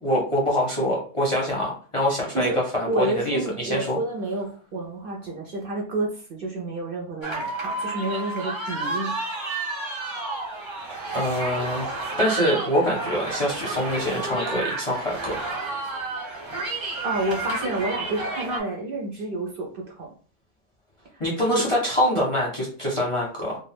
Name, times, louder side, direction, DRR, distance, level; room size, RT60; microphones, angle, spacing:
voice 1, 0.0-4.0 11.1-15.4 21.2-23.6, equal, 35° left, -3 dB, 0.6 m, -25 dB
voice 2, 2.9-9.1 17.0-20.1 21.5-21.6, right 2 dB, 55° right, 0 dB, 0.7 m, -29 dB
sound 1, 7.2-18.6, right 3 dB, 25° right, 0.9 m, -31 dB
2.4 x 2.2 x 3.2 m, 0.41 s
omnidirectional pair, 1.3 m